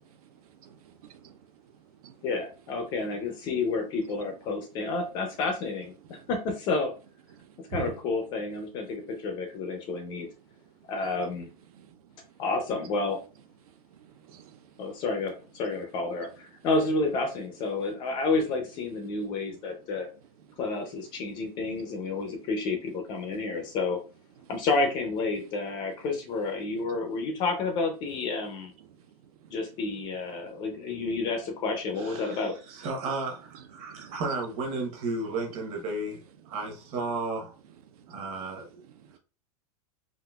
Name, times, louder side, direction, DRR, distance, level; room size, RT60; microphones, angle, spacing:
voice 1, 0.7-1.9 2.8-2.9 3.2-3.4 4.0-5.0 6.0-6.3 7.3-7.9 8.5-8.6 8.9-9.9 10.2-11.4 11.7-12.4 13.6-15.0 15.6-15.8 16.2-16.7 17.8-18.0 19.0-20.1 20.4-22.5 23.3-23.8 24.4-24.5 25.3-25.5 26.8-27.3 28.8-30.8 33.5-34.2 35.5-35.6 36.4-36.6 36.9-37.1 37.7-39.2, right 7 dB, 70° right, 8 dB, 0.5 m, -51 dB
voice 2, 2.2-6.9 7.7-10.3 10.9-11.5 12.4-13.2 14.8-20.1 20.6-24.0 24.5-28.7 29.5-32.6, left 3 dB, 25° left, 5 dB, 0.4 m, -30 dB
voice 3, 32.0-37.5 38.1-38.8, right 3 dB, 30° right, 2 dB, 0.8 m, -34 dB
3.8 x 2.5 x 2.2 m, 0.34 s
supercardioid pair, 170°, 20 cm